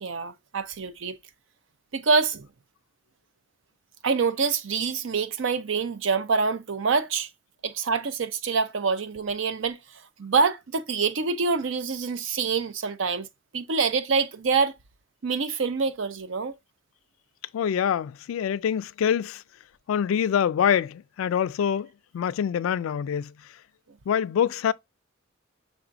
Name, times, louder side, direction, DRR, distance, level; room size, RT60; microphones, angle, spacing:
voice 1, 0.0-1.2 1.9-2.5 4.0-7.3 7.6-9.8 10.2-13.3 13.5-14.7 15.2-16.5, right 5 dB, 70° right, 0.6 m, -26 dB
voice 2, 17.5-19.4 19.9-23.3 24.1-24.7, left 8 dB, 90° left, 0.3 m, -25 dB
6.0 x 3.5 x 2.5 m
head